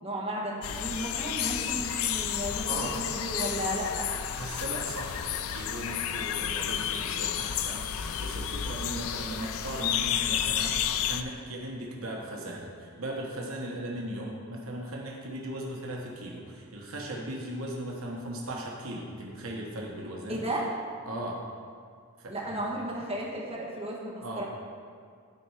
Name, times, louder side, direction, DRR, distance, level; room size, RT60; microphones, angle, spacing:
voice 1, 0.0-4.1 20.3-20.7 22.3-24.4, right 1 dB, 25° right, -5 dB, 1.4 m, -34 dB
sound 1, 0.6-11.2, left 9 dB, 70° left, 0.4 m, -31 dB
voice 2, 4.3-20.4 21.1-21.4 22.2-22.6 24.2-24.4, right 1 dB, 65° right, -2 dB, 1.2 m, -38 dB
12.5 x 4.2 x 4.9 m, 2.1 s
head